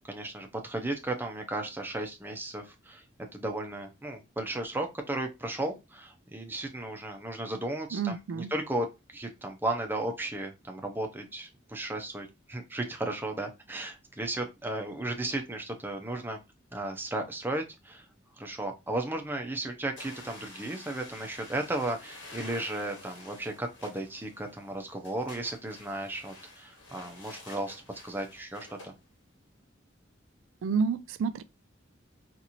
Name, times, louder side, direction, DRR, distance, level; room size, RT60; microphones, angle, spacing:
voice 1, 0.1-3.0 3.3-16.4 16.7-18.1 18.4-28.9, right 2 dB, 10° right, 0.7 m, -35 dB
voice 2, 7.9-8.5 30.6-31.4, right 5 dB, 90° right, 0.3 m, -29 dB
sound 1, 20.0-28.9, left 2 dB, 80° left, 1.4 m, -49 dB
4.1 x 2.6 x 2.9 m
head